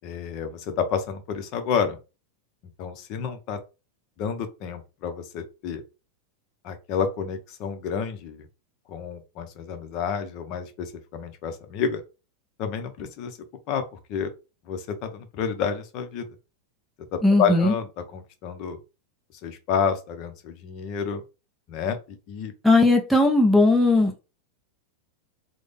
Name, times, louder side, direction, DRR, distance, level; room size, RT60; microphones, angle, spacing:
voice 1, 0.0-2.0 2.8-3.6 4.2-5.8 6.6-8.4 8.9-12.0 12.6-13.4 13.7-14.3 14.7-16.3 17.4-18.8 19.4-21.2 21.7-22.5, left 7 dB, 45° left, 0.7 m, -29 dB
voice 2, 17.2-17.7 22.6-24.2, left 2 dB, ahead, 0.5 m, -18 dB
3.6 x 2.1 x 3.4 m
supercardioid pair, 145°, 0 cm